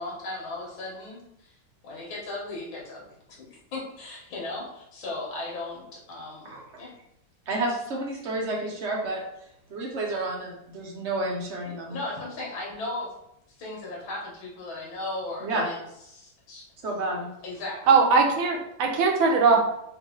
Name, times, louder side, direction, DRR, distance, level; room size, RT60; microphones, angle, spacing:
voice 1, 0.0-1.6 1.8-3.0 3.4-6.9 11.7-13.1 13.6-15.8 16.1-16.6 17.4-17.8, left 2 dB, 85° left, -3 dB, 2.1 m, -36 dB
voice 2, 7.5-9.2 9.7-12.0 15.4-15.7 16.8-17.3, right 2 dB, 55° right, -1 dB, 0.8 m, -30 dB
voice 3, 17.9-19.7, right 4 dB, 80° right, 2 dB, 1.5 m, -20 dB
4.6 x 2.7 x 3.8 m, 0.79 s
omnidirectional pair, 2.1 m